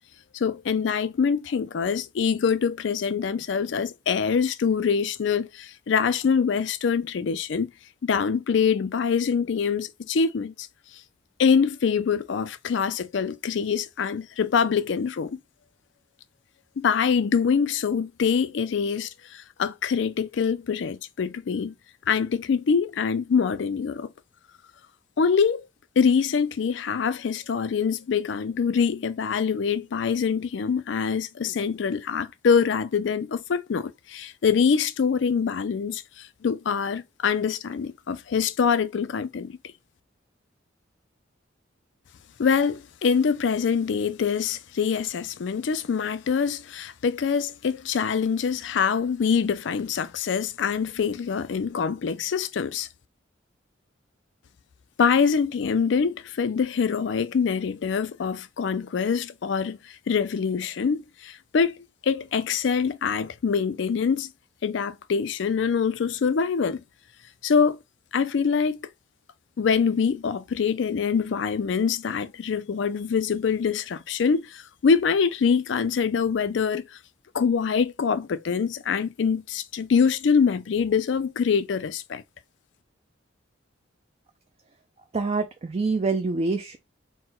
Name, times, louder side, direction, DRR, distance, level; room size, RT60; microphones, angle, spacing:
voice 1, 0.3-7.7 8.0-10.7 11.4-15.4 16.8-21.7 22.1-24.1 25.2-25.6 26.0-39.6 42.4-52.9 55.0-61.8 62.0-64.3 64.6-66.8 67.4-67.8 68.1-68.8 69.6-76.9 77.3-82.2, left 6 dB, 65° left, 0.4 m, -24 dB
voice 2, 85.1-86.8, right 3 dB, 30° right, 0.4 m, -26 dB
4.2 x 2.2 x 3.7 m
head